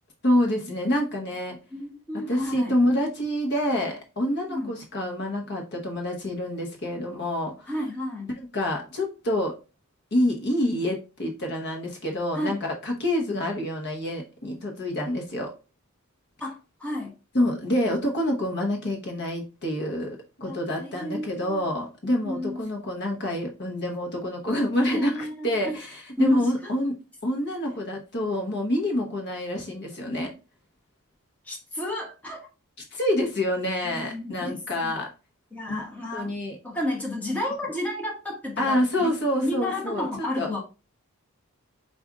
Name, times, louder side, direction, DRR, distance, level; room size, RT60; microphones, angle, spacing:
voice 1, 0.2-1.6 2.3-7.7 8.4-9.5 10.1-15.5 17.3-30.3 32.9-35.1 35.7-35.8 36.1-36.6 38.6-40.1 40.4-40.6, left 1 dB, 50° left, 1 dB, 1.0 m, -27 dB
voice 2, 1.7-2.8 4.5-4.7 7.7-8.3 12.3-12.6 16.4-17.2 20.4-21.7 22.2-22.6 24.9-25.7 26.2-26.7 31.4-32.5 33.8-34.9 35.5-36.4 36.6-39.1 39.4-40.6, left 1 dB, 5° left, -2 dB, 1.0 m, -32 dB
4.9 x 2.6 x 3.5 m, 0.30 s
head